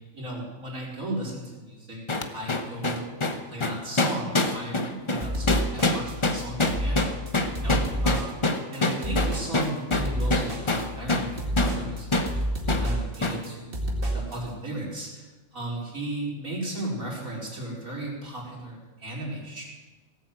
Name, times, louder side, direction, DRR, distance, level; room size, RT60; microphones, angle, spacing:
voice 1, 0.1-2.0 2.3-3.0 3.5-7.1 7.5-8.3 8.7-13.7 14.1-15.3 15.5-19.6, right 1 dB, 80° right, -4 dB, 4.9 m, -35 dB
sound 1, 2.1-11.3 11.6-11.8 12.1-12.3 12.7-12.9 13.2-13.4, left 2 dB, 25° left, 0.8 m, -25 dB
sound 2, 5.2-14.4, equal, 40° right, 2.3 m, -30 dB
17.5 x 8.1 x 7.7 m, 1.2 s
omnidirectional pair, 1.4 m